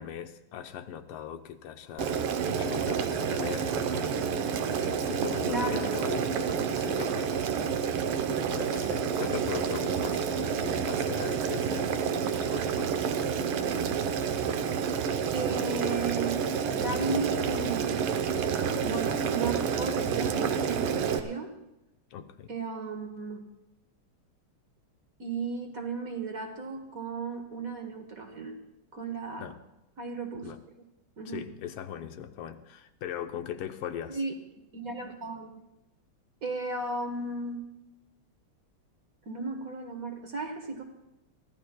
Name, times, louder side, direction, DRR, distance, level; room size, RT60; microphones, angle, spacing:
voice 1, 0.0-4.2 4.7-7.4 8.5-13.1 22.1-22.5 29.4-29.6 30.4-30.6 31.3-34.2, left 9 dB, 90° left, 8 dB, 1.7 m, -39 dB
Boiling, 2.0-21.2, right 7 dB, 85° right, 1.8 m, -29 dB
voice 2, 5.4-6.0 15.3-16.4 16.7-18.4 18.8-21.6 22.5-23.4 25.2-28.6 28.9-29.5 30.0-30.5 31.2-31.5 34.1-34.3 34.7-35.5 36.4-37.6 39.3-40.8, right 3 dB, 45° right, 4 dB, 1.5 m, -35 dB
23.5 x 15.0 x 2.2 m, 0.92 s
omnidirectional pair, 2.4 m